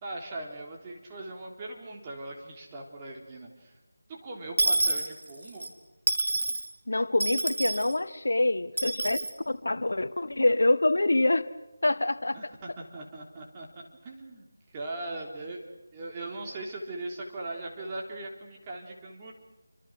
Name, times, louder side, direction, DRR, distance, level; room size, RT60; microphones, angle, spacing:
voice 1, 0.0-3.8 4.1-5.7 12.3-13.7 14.0-14.5 14.7-19.3, right 2 dB, 20° right, 3.5 m, -40 dB
Dishes pots and pans / Coin (dropping), 4.6-5.7 6.1-6.7 7.2-7.9 8.8-9.3, right 2 dB, 70° right, 3.7 m, -27 dB
voice 2, 6.9-11.5 11.8-12.4, left 2 dB, 75° left, 1.3 m, -26 dB
28.5 x 25.5 x 6.4 m
figure-of-eight pair, 170°, 0 cm